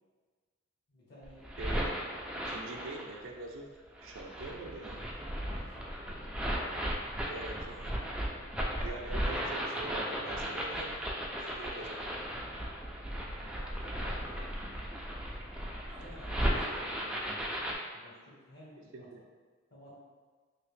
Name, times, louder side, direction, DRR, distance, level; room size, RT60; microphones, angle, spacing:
voice 1, 0.9-1.5 5.2-7.5 8.3-8.5 8.8-10.7 12.9-19.1 19.7-19.9, equal, 55° left, -7 dB, 1.2 m, -54 dB
sound 1, 1.2-3.2 4.0-17.7, equal, 5° right, 0.3 m, -36 dB
voice 2, 1.6-1.9 2.3-3.7 4.0-5.1 7.2-7.9 8.8-11.0 11.4-12.4 16.1-16.4 18.9-19.2, right 2 dB, 75° right, 1 dB, 0.5 m, -44 dB
3.2 x 2.8 x 3.1 m, 1.5 s
head